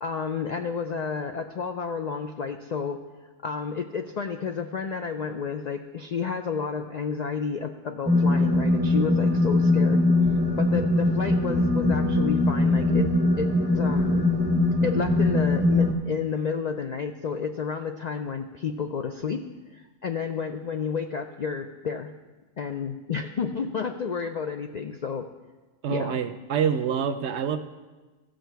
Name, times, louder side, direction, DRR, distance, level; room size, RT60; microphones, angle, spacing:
voice 1, 0.0-3.0 3.4-10.0 10.6-13.1 13.4-14.3 14.8-19.4 19.7-22.1 22.6-25.3 25.9-26.2, left 6 dB, 65° left, 6 dB, 0.4 m, -31 dB
sound 1, 8.1-15.9, left 2 dB, 10° right, 0.6 m, -22 dB
voice 2, 25.8-27.6, right 7 dB, 65° right, 10 dB, 0.8 m, -26 dB
15.5 x 6.4 x 4.6 m, 1.3 s
omnidirectional pair, 1.3 m